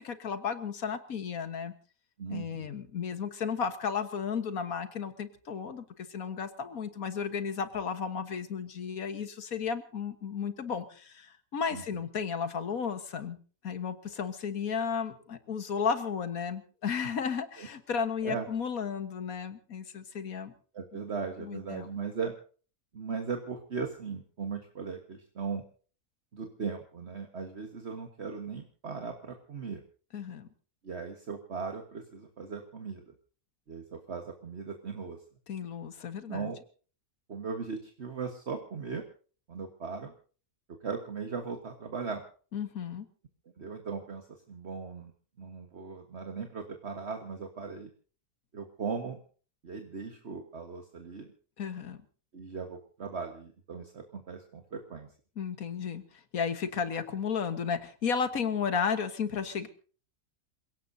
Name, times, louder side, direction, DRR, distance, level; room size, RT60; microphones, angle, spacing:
voice 1, 0.0-1.7 2.3-13.4 13.6-20.5 21.4-21.9 30.1-30.5 35.5-36.5 42.5-43.1 51.6-52.0 55.4-56.0 56.3-59.7, left 6 dB, 85° left, 10 dB, 1.9 m, -33 dB
voice 2, 2.2-2.8 11.7-12.0 17.6-17.7 18.2-18.5 20.7-22.3 22.9-25.6 26.3-29.8 30.8-33.0 33.7-35.2 36.3-36.6 37.3-39.0 39.5-40.1 40.8-42.2 43.6-45.1 45.4-47.9 48.5-49.2 49.6-51.3 52.3-55.1, right 5 dB, 50° right, 4 dB, 1.8 m, -38 dB
28.5 x 17.0 x 2.8 m, 0.40 s
omnidirectional pair, 1.5 m